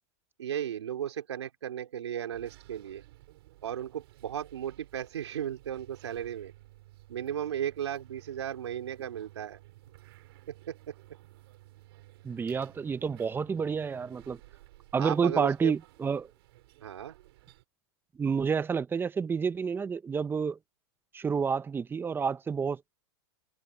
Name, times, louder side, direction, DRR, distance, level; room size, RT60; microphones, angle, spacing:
voice 1, 0.4-3.0 3.6-6.5 7.1-9.6 10.5-10.9 15.0-15.7 16.8-17.2, right 10 dB, 90° right, 3.2 m, -35 dB
sound 1, 2.3-17.6, right 17 dB, 65° right, 6.1 m, -55 dB
voice 2, 12.2-14.4 14.9-16.3 18.2-20.6 21.1-22.9, right 6 dB, 15° right, 1.0 m, -29 dB
hypercardioid pair, 120°, 14 cm